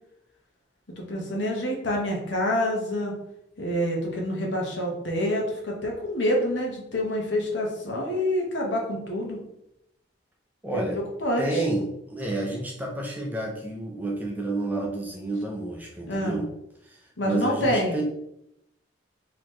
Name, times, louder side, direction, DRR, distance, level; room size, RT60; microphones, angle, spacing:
voice 1, 1.0-3.1 3.6-9.4 10.9-11.6 16.1-16.4 17.2-18.0, left 1 dB, 70° left, -1 dB, 1.0 m, -27 dB
voice 2, 10.6-11.0 11.4-16.5 16.8-18.0, right 2 dB, 10° right, -1 dB, 0.5 m, -30 dB
3.9 x 3.0 x 3.1 m, 0.81 s
head